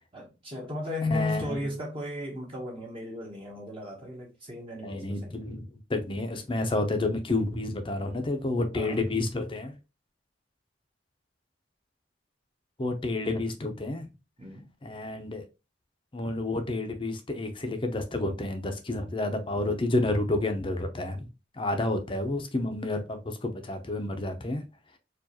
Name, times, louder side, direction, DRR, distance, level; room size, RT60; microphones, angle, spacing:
voice 1, 0.1-5.4 8.7-9.0 14.4-14.7 21.7-21.8, left 2 dB, 30° right, 0.9 m, -35 dB
voice 2, 1.1-1.7 4.8-5.6 5.9-9.7 12.8-14.1 14.8-15.4 16.1-21.3 21.6-24.6, left 2 dB, 25° left, 0.6 m, -30 dB
4.5 x 2.5 x 2.8 m
head